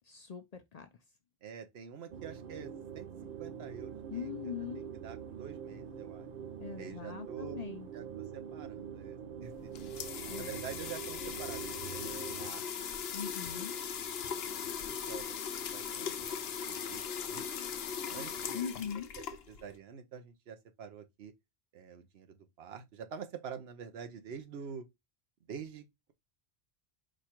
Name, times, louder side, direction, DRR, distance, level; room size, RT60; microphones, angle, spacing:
voice 1, 0.1-0.9 4.1-4.9 6.6-7.9 10.3-10.6 13.1-13.8 18.5-19.1, left 7 dB, 55° left, 0.5 m, -41 dB
voice 2, 1.4-3.1 3.4-4.5 5.0-6.3 6.8-7.6 7.9-10.0 10.4-12.9 13.5-13.6 14.3-15.3 15.6-17.0 17.3-17.4 18.1-18.6 19.5-21.3 21.7-24.9 25.5-26.1, right 7 dB, 75° right, 1.0 m, -47 dB
sound 1, 2.1-12.5, right 8 dB, 55° right, 0.7 m, -44 dB
sound 2, 9.5-19.8, left 7 dB, 75° left, 0.9 m, -39 dB
5.0 x 2.4 x 4.3 m
omnidirectional pair, 1.0 m